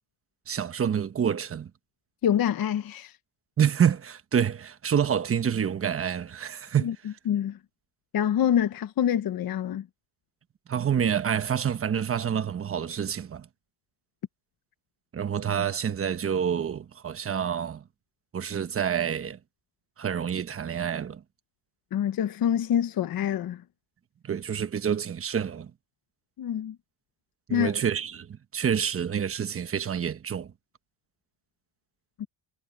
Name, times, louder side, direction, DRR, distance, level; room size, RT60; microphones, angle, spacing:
voice 1, 0.5-1.7 3.6-6.9 10.7-13.5 15.1-17.8 18.3-19.4 20.0-21.2 24.2-25.7 27.5-30.5, right 8 dB, 30° right, 1.1 m, -27 dB
voice 2, 2.2-3.2 6.8-6.9 7.3-7.6 8.1-9.9 21.9-23.6 26.4-26.8 27.5-27.7 32.2-32.3, left 9 dB, 50° left, 1.1 m, -26 dB
cardioid pair, 135°, 46 cm